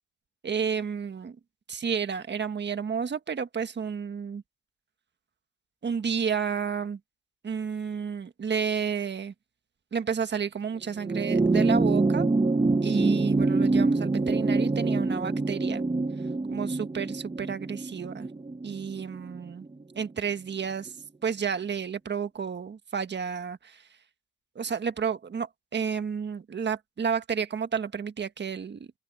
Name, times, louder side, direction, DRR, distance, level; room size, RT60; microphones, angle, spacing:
voice 1, 0.4-1.4 1.7-4.4 5.8-7.0 7.4-9.3 9.9-12.3 12.8-15.8 16.5-18.3 18.6-19.7 19.9-20.9 21.2-23.8 24.5-28.9, right 6 dB, 35° right, 1.5 m, -31 dB
sound 1, 11.0-19.7 20.9-21.0, right 3 dB, 15° right, 1.4 m, -25 dB
open air
cardioid pair, 90°, 30 cm